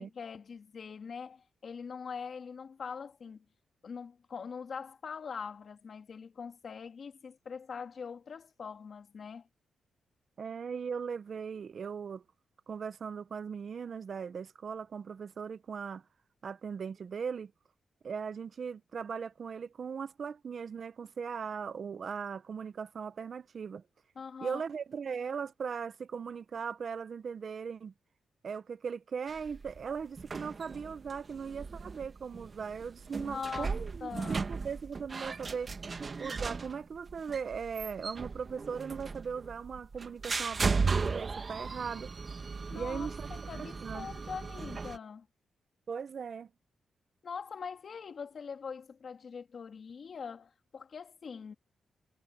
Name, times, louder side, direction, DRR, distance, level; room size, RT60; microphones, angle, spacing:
voice 1, 0.0-3.4 3.8-9.5 24.2-24.6 33.2-33.7 34.0-34.5 42.7-45.3 47.2-51.5, left 6 dB, 55° left, 2.7 m, -43 dB
voice 2, 10.4-12.2 12.7-16.0 16.4-17.5 18.0-23.8 24.4-27.9 28.4-35.7 36.2-42.1 42.7-43.3 43.6-44.1 45.9-46.5, right 6 dB, 55° right, 0.8 m, -39 dB
sound 1, 29.3-45.0, right 4 dB, 40° right, 1.8 m, -37 dB
cardioid pair, 95°, 0 cm